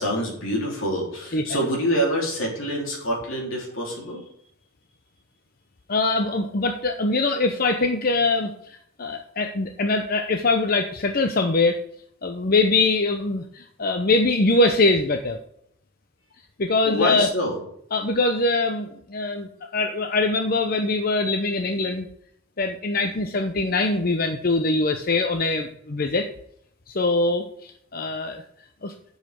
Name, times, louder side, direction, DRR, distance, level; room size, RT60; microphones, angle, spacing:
voice 1, 0.0-4.2 16.9-17.6, equal, 80° left, -1 dB, 3.7 m, -26 dB
voice 2, 5.9-11.8 12.2-15.4 16.6-17.3 17.9-22.1 22.6-26.3 26.9-28.4 28.8-28.9, left 3 dB, 45° left, 5 dB, 0.7 m, -23 dB
7.8 x 6.6 x 6.8 m, 0.70 s
head